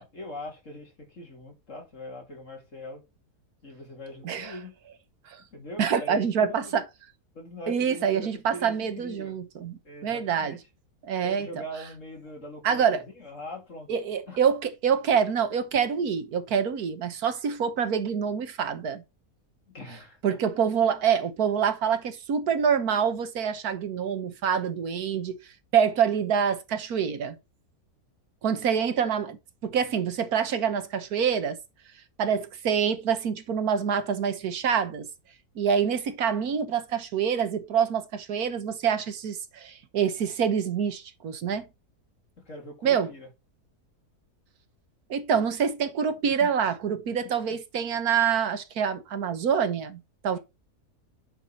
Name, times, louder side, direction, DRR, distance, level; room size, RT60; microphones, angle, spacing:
voice 1, 0.0-3.0 3.6-4.7 5.5-6.7 7.3-9.4 9.8-10.6 11.2-13.9 14.3-14.4 19.7-20.4 42.5-43.3 46.2-46.5 47.5-47.6 50.3-50.4, left 1 dB, 55° left, 3.2 m, -42 dB
voice 2, 4.2-4.5 5.3-5.4 5.8-6.8 7.7-10.6 11.0-11.5 12.6-13.0 13.9-19.0 20.2-25.4 25.7-27.4 28.4-31.6 32.2-35.1 35.5-41.6 42.8-43.1 45.1-50.4, right 7 dB, 75° right, 1.6 m, -26 dB
9.9 x 5.5 x 4.2 m
omnidirectional pair, 1.6 m